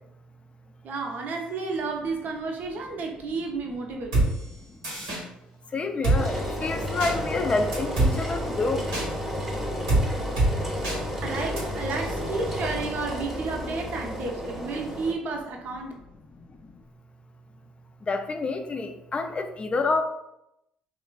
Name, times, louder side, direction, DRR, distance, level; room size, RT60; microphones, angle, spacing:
voice 1, 0.8-4.3 11.2-15.9, right 3 dB, 55° right, 1 dB, 0.6 m, -32 dB
Drum kit, 4.1-4.3 4.8-5.2 6.0-6.2 7.0-7.1 7.7-8.1 8.9-9.1 9.9-10.0 10.4-10.5 10.8-11.0 11.6-11.7, right 2 dB, 85° right, 1.0 m, -22 dB
voice 2, 4.7-5.1 5.7-8.9 16.3-16.8 18.0-20.0, left 3 dB, 30° left, 7 dB, 0.3 m, -28 dB
Engine, 6.1-15.1, equal, 10° right, 0.7 m, -32 dB
2.9 x 2.4 x 2.2 m, 0.85 s
hypercardioid pair, 60°, 4 cm